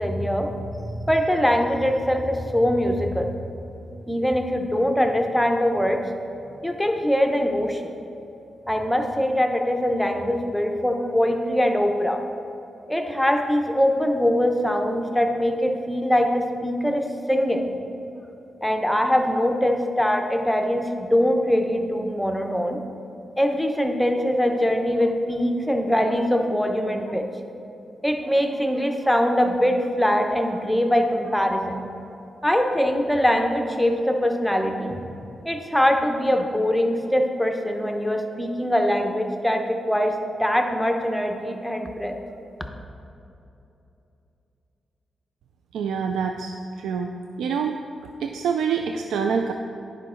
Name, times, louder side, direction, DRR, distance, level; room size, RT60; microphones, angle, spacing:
voice 1, 0.0-3.3 4.1-6.0 6.6-7.9 8.7-12.2 12.9-17.7 18.6-22.8 23.4-27.3 28.0-31.9 32.4-35.0 35.4-42.1, equal, 5° left, 4 dB, 0.8 m, -22 dB
voice 2, 45.7-47.1 47.4-47.8 48.2-49.5, right 6 dB, 90° right, 4 dB, 0.3 m, -26 dB
10.0 x 5.1 x 3.8 m, 2.8 s
cardioid pair, 55°, 0 cm